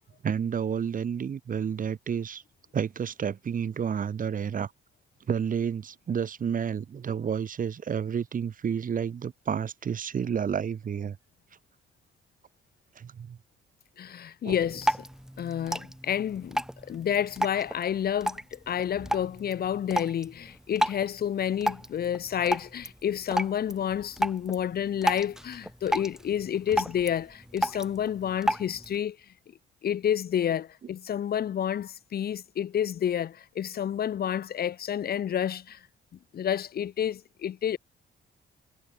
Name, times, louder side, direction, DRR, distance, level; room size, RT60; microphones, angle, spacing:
voice 1, 0.2-2.4 2.7-4.7 5.3-11.2 13.0-13.4 14.4-14.6, right 7 dB, 45° right, 1.1 m, -30 dB
voice 2, 14.0-15.0 15.4-29.2 29.8-35.8 36.3-37.8, left 9 dB, 50° left, 0.8 m, -29 dB
Drip, 14.5-29.0, equal, ahead, 1.2 m, -33 dB
cardioid pair, 90°, 20 cm